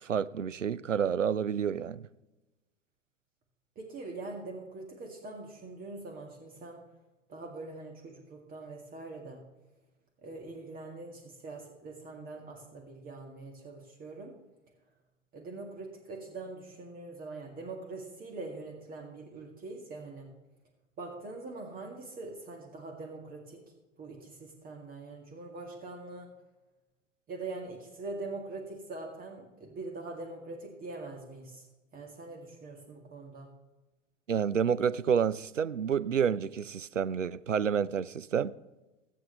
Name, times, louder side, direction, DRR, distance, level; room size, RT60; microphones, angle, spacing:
voice 1, 0.0-2.1 34.3-38.5, right 7 dB, 90° right, 0.5 m, -29 dB
voice 2, 3.8-6.8 7.3-9.4 10.2-14.3 15.3-20.3 21.0-23.6 24.0-26.3 27.3-31.7 31.9-33.5, right 3 dB, 25° right, 2.0 m, -43 dB
22.0 x 7.7 x 3.3 m
figure-of-eight pair, 95°, 37 cm